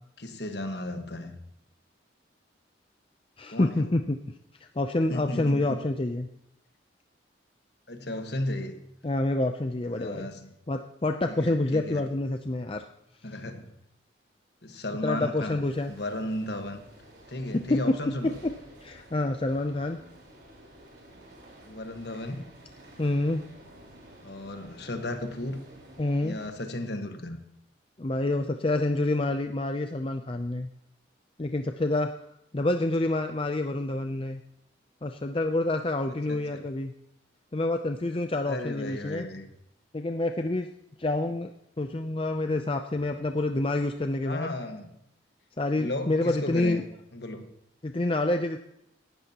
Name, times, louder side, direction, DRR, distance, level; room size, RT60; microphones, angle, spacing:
voice 1, 0.2-1.4 3.5-3.9 5.1-5.8 7.9-8.8 9.9-10.5 11.3-12.0 13.2-13.7 14.6-15.6 15.9-16.8 17.3-18.3 21.6-22.5 24.2-25.6 26.2-27.4 36.1-36.6 38.5-39.5 44.2-44.9 45.8-46.8 47.1-47.5, left 1 dB, 60° left, 5 dB, 1.5 m, -34 dB
voice 2, 3.4-4.2 4.8-6.3 9.0-10.3 10.7-12.8 15.0-15.9 17.5-17.9 18.8-20.0 23.0-23.4 26.0-26.4 28.0-30.7 31.4-32.1 32.5-34.4 35.0-36.9 37.5-39.3 39.9-40.7 41.0-41.5 41.8-44.5 45.6-46.8 47.8-48.6, left 2 dB, 30° left, 6 dB, 0.5 m, -27 dB
sound 1, 15.6-26.5, right 1 dB, 55° right, 4.1 m, -52 dB
17.5 x 12.5 x 2.9 m, 0.78 s
head